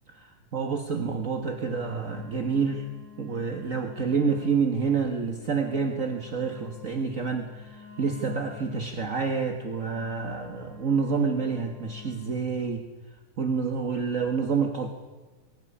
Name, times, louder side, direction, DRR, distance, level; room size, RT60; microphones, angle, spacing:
voice 1, 0.1-2.9 3.2-12.8 13.4-14.9, right 5 dB, 40° right, 5 dB, 1.3 m, -28 dB
Wind instrument woodwind instrument, 1.4-12.4, left 7 dB, 60° right, 7.9 m, -50 dB
23.0 x 16.5 x 10.0 m, 1.3 s
omnidirectional pair, 3.5 m